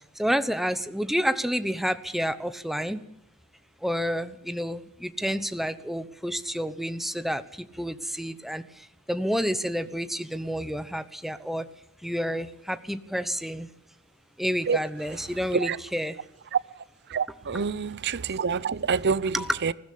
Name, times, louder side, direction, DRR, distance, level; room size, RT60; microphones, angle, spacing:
voice 1, 0.2-3.0 3.8-7.4 7.8-8.6 9.1-11.6 12.0-13.7 14.4-16.1 19.3-19.6, equal, ahead, 0.9 m, -29 dB
voice 2, 17.1-19.7, right 5 dB, 50° right, 0.7 m, -27 dB
20.0 x 15.5 x 8.5 m
head